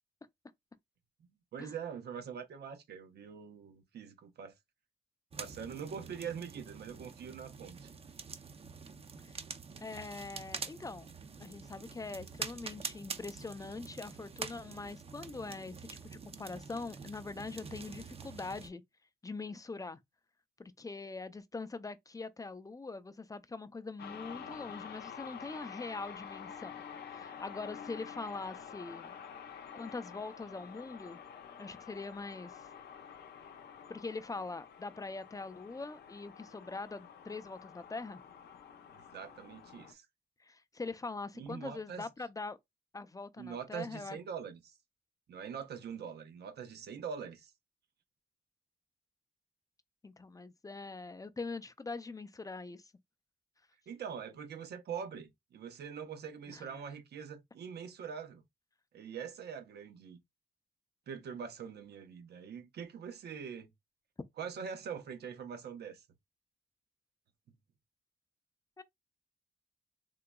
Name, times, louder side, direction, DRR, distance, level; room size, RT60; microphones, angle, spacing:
voice 1, 1.5-4.5 5.4-7.9 38.9-40.1 41.4-42.1 43.4-44.8 45.3-47.5 53.9-58.4 58.9-60.2 61.1-63.7 64.4-66.0, right 7 dB, 80° right, 0.8 m, -43 dB
sound 1, 5.3-18.7, right 5 dB, 35° right, 0.5 m, -46 dB
voice 2, 9.8-11.1 11.4-18.8 19.2-20.0 20.6-26.8 27.1-29.1 29.7-31.2 31.6-32.6 33.9-38.2 40.4-42.6 42.9-44.2 50.0-52.9 56.5-56.8 68.8-68.9, left 3 dB, 20° left, 0.4 m, -43 dB
sound 2, 24.0-39.9, left 7 dB, 85° left, 0.6 m, -49 dB
3.7 x 2.9 x 2.2 m
cardioid pair, 75°, 17 cm